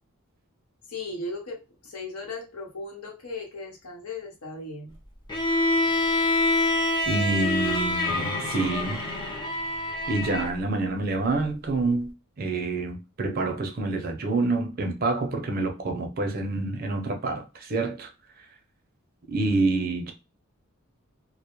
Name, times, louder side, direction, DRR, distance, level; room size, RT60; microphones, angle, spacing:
voice 1, 0.9-1.6 1.8-4.9, left 2 dB, 85° left, 0.9 m, -36 dB
Bowed string instrument, 5.3-10.5, left 2 dB, 20° left, 0.5 m, -26 dB
voice 2, 7.1-9.1 10.1-18.1 19.3-20.1, right 3 dB, 40° right, 0.5 m, -27 dB
2.1 x 2.0 x 2.9 m
head